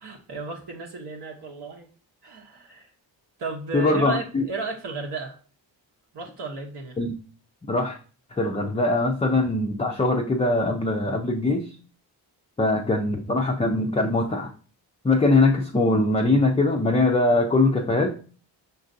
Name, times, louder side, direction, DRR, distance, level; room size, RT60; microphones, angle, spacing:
voice 1, 0.0-1.9 2.2-2.9 3.4-5.4 6.1-7.0, right 3 dB, 60° right, 1 dB, 0.8 m, -34 dB
voice 2, 3.7-4.4 7.0-7.1 7.7-8.0 8.4-11.7 12.6-14.5 15.0-18.2, left 2 dB, 15° left, 2 dB, 0.4 m, -22 dB
5.3 x 2.5 x 2.5 m, 0.39 s
cardioid pair, 50°, 46 cm